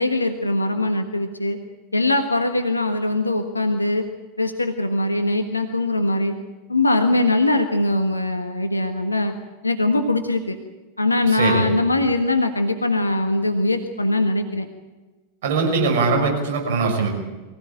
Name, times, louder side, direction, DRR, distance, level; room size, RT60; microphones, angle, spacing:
voice 1, 0.0-1.6 1.9-4.0 4.4-6.4 6.7-9.3 9.6-10.6 11.0-14.7, left 2 dB, 80° left, 7 dB, 1.5 m, -21 dB
voice 2, 11.2-11.7 15.4-17.1, right 4 dB, 55° right, 1 dB, 6.4 m, -21 dB
24.0 x 16.0 x 8.8 m, 1.2 s
figure-of-eight pair, 90°, 0 cm